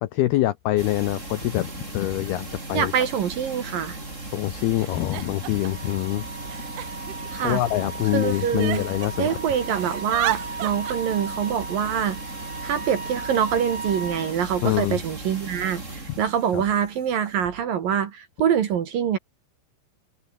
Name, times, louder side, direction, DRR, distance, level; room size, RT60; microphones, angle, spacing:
voice 1, 0.0-2.9 4.3-6.2 7.4-9.3 14.6-15.0 16.5-16.6, left 15 dB, 80° left, 2.3 m, -25 dB
sound 1, 0.8-17.4, right 2 dB, 15° right, 5.3 m, -37 dB
Giggle, 2.2-2.3 3.3-3.4 3.6-4.1 4.8-5.9 6.5-7.8 8.3-9.3 9.6-10.9, right 17 dB, 80° right, 3.4 m, -33 dB
voice 2, 2.7-4.0 7.3-7.6 8.1-8.8 9.2-12.2 12.6-19.2, right 8 dB, 55° right, 2.9 m, -25 dB
Wind instrument woodwind instrument, 4.9-14.4, right 3 dB, 40° right, 8.4 m, -37 dB
omnidirectional pair, 5.7 m